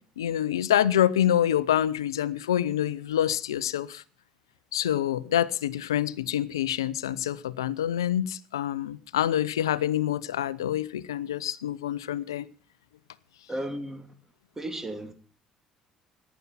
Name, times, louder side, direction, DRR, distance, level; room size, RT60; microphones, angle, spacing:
voice 1, 0.2-4.0 4.7-12.5, left 11 dB, 90° left, 0.5 m, -26 dB
voice 2, 13.5-14.1 14.6-15.1, right 1 dB, 20° right, 2.8 m, -34 dB
14.5 x 11.0 x 5.6 m
hypercardioid pair, 60°, 2 cm